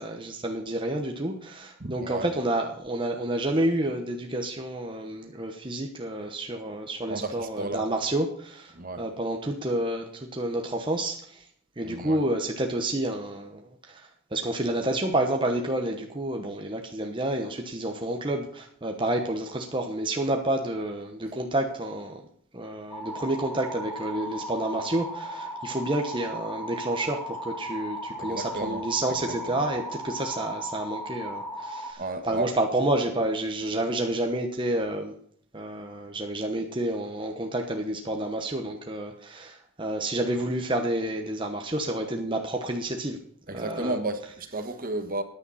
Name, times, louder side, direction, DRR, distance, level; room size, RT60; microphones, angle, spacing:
voice 1, 0.0-10.0 10.3-11.4 11.8-22.2 22.5-35.1 35.5-43.2 43.5-44.0, right 1 dB, 25° right, 1.0 m, -29 dB
voice 2, 1.8-2.3 7.1-7.8 8.7-9.0 11.8-12.2 28.2-28.8 29.1-29.6 32.0-32.5 43.5-45.2, right 2 dB, 45° right, 1.4 m, -33 dB
sound 1, 22.9-31.9, equal, 10° left, 2.2 m, -36 dB
14.0 x 10.0 x 4.1 m
head